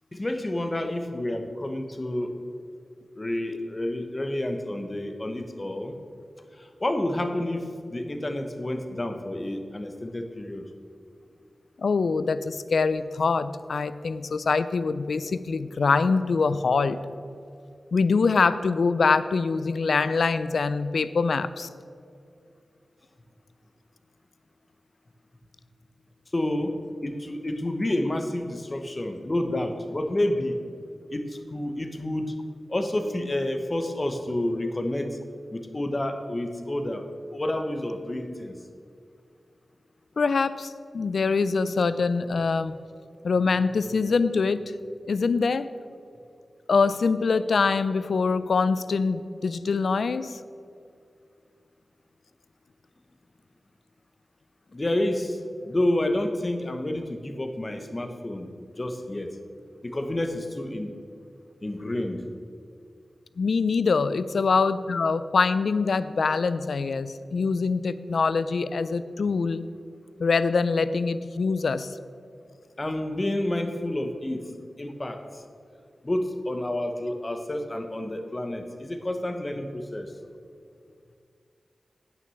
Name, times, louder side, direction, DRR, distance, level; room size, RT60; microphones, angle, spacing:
voice 1, 0.1-2.3 3.2-5.9 6.5-10.7 26.3-30.6 31.1-32.4 32.7-35.2 35.5-37.0 37.3-38.5 54.7-58.5 58.8-59.4 59.8-60.9 61.6-62.2 72.8-74.4 74.8-75.4 76.0-80.1, left 1 dB, 30° left, 6 dB, 1.0 m, -29 dB
voice 2, 11.8-17.0 17.9-21.7 40.2-42.8 43.2-44.7 45.1-45.7 46.7-50.4 63.4-69.6 70.2-71.9, left 4 dB, 80° left, 14 dB, 0.4 m, -24 dB
9.3 x 6.3 x 6.9 m, 2.3 s
wide cardioid pair, 70°, 0 cm